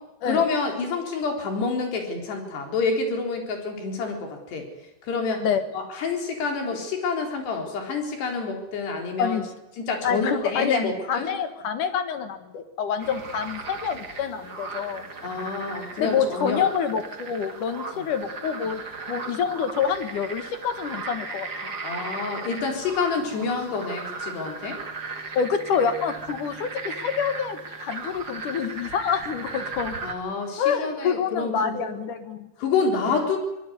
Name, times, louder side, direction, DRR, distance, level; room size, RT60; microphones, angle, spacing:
voice 1, 0.2-4.7 5.0-5.5 5.7-9.4 9.8-11.3 15.2-16.6 17.9-18.1 21.8-24.8 30.0-32.0 32.6-33.4, left 4 dB, 75° left, 3 dB, 6.1 m, -28 dB
voice 2, 9.2-9.5 10.0-15.1 16.0-18.8 19.1-21.7 25.3-30.0 30.6-32.5 33.0-33.2, left 7 dB, 60° left, 9 dB, 2.8 m, -27 dB
sound 1, 13.0-30.1, right 4 dB, 30° right, 2.3 m, -37 dB
23.5 x 20.5 x 9.6 m, 0.95 s
omnidirectional pair, 4.8 m